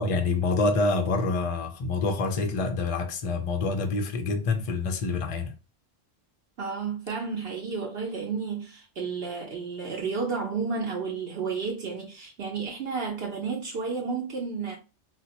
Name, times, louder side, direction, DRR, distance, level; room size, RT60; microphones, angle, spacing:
voice 1, 0.0-5.5, left 3 dB, 65° left, 0.3 m, -26 dB
voice 2, 6.6-14.8, right 5 dB, 65° right, 0.9 m, -32 dB
4.0 x 2.1 x 2.8 m
omnidirectional pair, 1.2 m